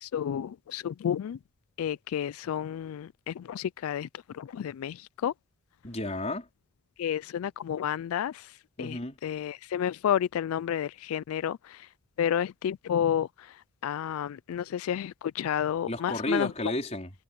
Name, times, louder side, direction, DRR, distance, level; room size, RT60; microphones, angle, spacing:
voice 1, 0.0-1.4 1.8-4.1 4.3-5.3 7.0-8.5 8.8-11.9 12.2-13.6 13.8-16.5, left 9 dB, 85° left, 0.3 m, -31 dB
voice 2, 5.8-6.5 8.8-9.2 15.9-17.1, left 1 dB, 30° left, 4.4 m, -32 dB
head